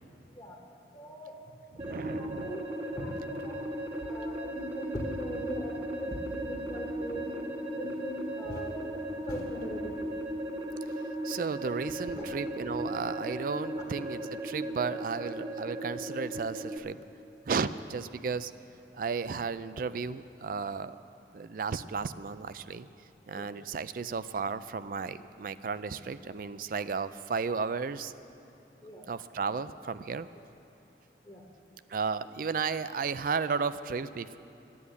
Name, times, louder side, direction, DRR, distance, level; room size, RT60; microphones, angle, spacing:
voice 1, 0.9-1.4 1.7-3.7 4.0-7.3 7.7-10.2 12.1-12.3 23.3-23.5 28.8-29.0 31.2-31.4, equal, 25° left, -2 dB, 1.3 m, -40 dB
sound 1, 1.8-16.8, right 1 dB, 30° right, 1.2 m, -37 dB
voice 2, 1.8-2.5 11.2-17.0 17.5-18.5 18.9-21.0 21.3-22.9 23.3-28.1 29.1-30.3 31.9-34.4, right 5 dB, 50° right, 14 dB, 0.4 m, -34 dB
11.5 x 11.0 x 8.2 m, 2.9 s
head